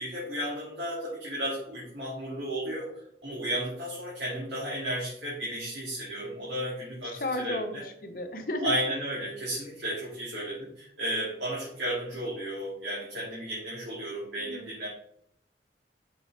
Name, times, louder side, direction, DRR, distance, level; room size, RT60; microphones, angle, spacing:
voice 1, 0.0-2.9 3.2-7.8 8.6-14.9, right 1 dB, 85° right, -7 dB, 2.6 m, -33 dB
voice 2, 7.1-8.7 14.4-14.7, left 1 dB, 50° left, 5 dB, 1.0 m, -33 dB
6.4 x 6.1 x 3.3 m, 0.69 s
head